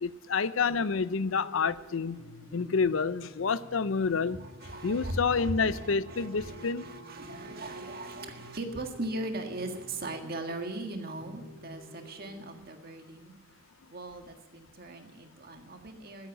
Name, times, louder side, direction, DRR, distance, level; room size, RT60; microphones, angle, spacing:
voice 1, 0.0-2.2 2.5-4.4 4.8-6.9, left 5 dB, 80° left, 16 dB, 0.6 m, -28 dB
sound 1, 0.6-12.6, left 1 dB, 85° right, 3.0 m, -51 dB
voice 2, 4.0-13.5 13.9-16.3, right 2 dB, 50° right, 4 dB, 1.8 m, -39 dB
12.5 x 10.5 x 7.3 m, 1.2 s
head